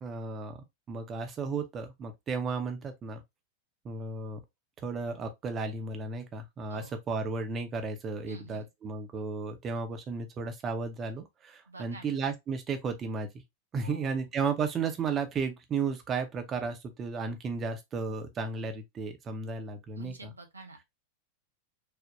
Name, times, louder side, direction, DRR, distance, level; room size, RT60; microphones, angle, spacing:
voice 1, 0.0-3.2 3.8-4.4 4.8-13.4 13.7-20.3, right 4 dB, 25° right, 0.7 m, -34 dB
voice 2, 8.3-8.7 11.7-12.2 13.8-14.3 20.0-20.9, right 2 dB, 80° right, 0.7 m, -48 dB
3.4 x 2.2 x 2.6 m
figure-of-eight pair, 90°, 0 cm